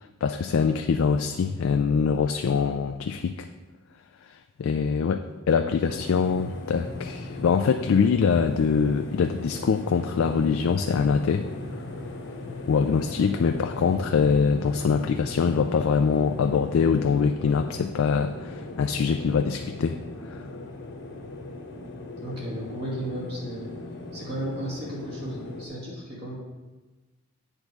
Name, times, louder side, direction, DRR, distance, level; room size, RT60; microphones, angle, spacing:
voice 1, 0.2-3.5 4.6-11.5 12.7-20.0 20.3-20.4, left 5 dB, 75° left, 7 dB, 0.3 m, -24 dB
sound 1, 5.8-25.7, left 2 dB, 60° left, 1.0 m, -38 dB
voice 2, 22.2-23.7 24.1-26.3, right 1 dB, 50° right, -5 dB, 2.6 m, -34 dB
8.1 x 3.6 x 6.6 m, 1.2 s
head